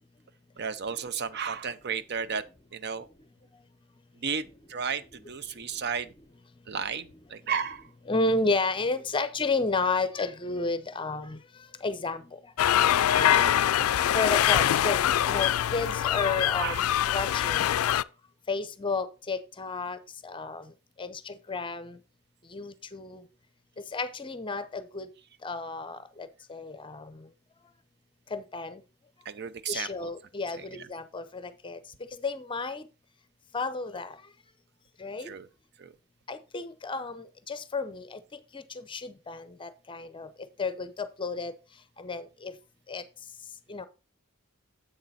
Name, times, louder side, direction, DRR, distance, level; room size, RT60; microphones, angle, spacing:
voice 1, 0.6-2.4 2.7-3.1 4.2-6.1 6.7-7.9 13.3-13.6 16.6-16.9 29.3-30.1 30.5-30.9 35.2-35.5 35.8-35.9, right 6 dB, 50° right, 0.6 m, -33 dB
voice 2, 8.1-11.4 11.8-12.2 13.1-13.4 14.1-17.6 18.5-20.0 20.2-20.6 21.0-22.0 22.5-23.2 23.9-25.1 25.4-27.1 28.3-28.8 29.7-31.8 32.2-32.8 33.5-34.1 35.0-35.3 36.3-38.2 38.5-38.6 38.9-40.3 40.6-41.5 42.0-42.5 42.9-43.0 43.7-43.9, left 3 dB, 25° left, 0.6 m, -32 dB
sound 1, 12.6-18.0, left 11 dB, 80° left, 0.3 m, -24 dB
7.9 x 6.6 x 4.1 m
head